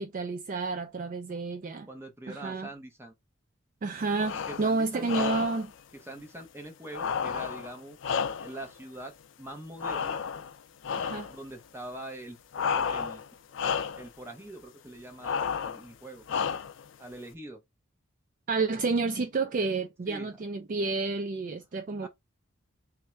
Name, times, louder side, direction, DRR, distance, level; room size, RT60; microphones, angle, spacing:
voice 1, 0.0-1.9 2.3-2.7 3.8-5.7 11.0-11.3 18.5-22.1, right 3 dB, 40° right, 0.3 m, -30 dB
voice 2, 1.9-3.1 4.5-5.1 5.9-8.0 8.4-10.2 11.3-12.4 12.7-13.2 14.0-16.2 17.0-17.6 20.1-20.4 22.0-22.1, right 1 dB, 10° right, 0.8 m, -43 dB
sound 1, 4.2-4.7 5.0-5.7 6.9-8.7 9.8-10.5 10.8-11.4 12.5-13.3 13.5-14.1 15.2-15.8 16.3-16.9, left 6 dB, 65° left, 0.4 m, -31 dB
3.6 x 2.1 x 4.3 m
head